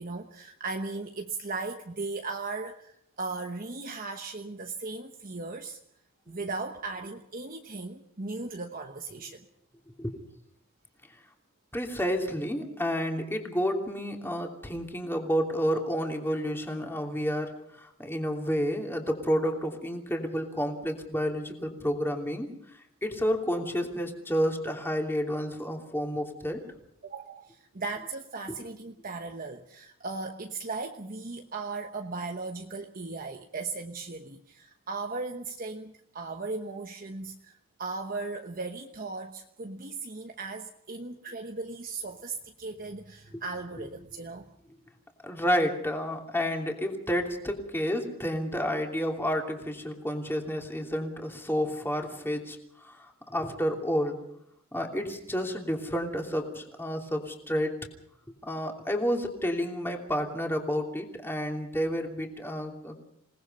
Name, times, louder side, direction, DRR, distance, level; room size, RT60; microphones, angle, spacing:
voice 1, 0.0-5.8 6.3-9.4 27.0-44.6, right 3 dB, 40° right, 4 dB, 1.1 m, -37 dB
voice 2, 11.7-17.5 17.8-22.5 23.0-26.6 45.2-54.2 54.7-57.7 58.4-63.0, equal, 10° left, 2 dB, 2.9 m, -30 dB
27.5 x 19.0 x 5.5 m, 0.73 s
head